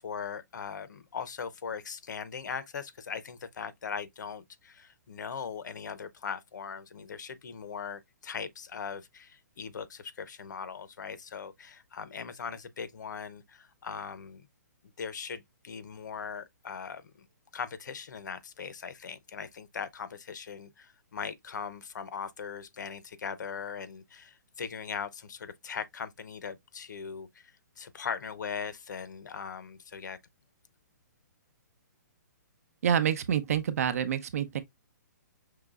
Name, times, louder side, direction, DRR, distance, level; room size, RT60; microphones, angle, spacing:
voice 1, 0.0-14.5 15.0-17.3 17.5-30.2, left 6 dB, 80° left, 0.8 m, -40 dB
voice 2, 32.8-34.6, right 8 dB, 55° right, 0.8 m, -27 dB
5.7 x 3.1 x 2.5 m
hypercardioid pair, 165°, 10 cm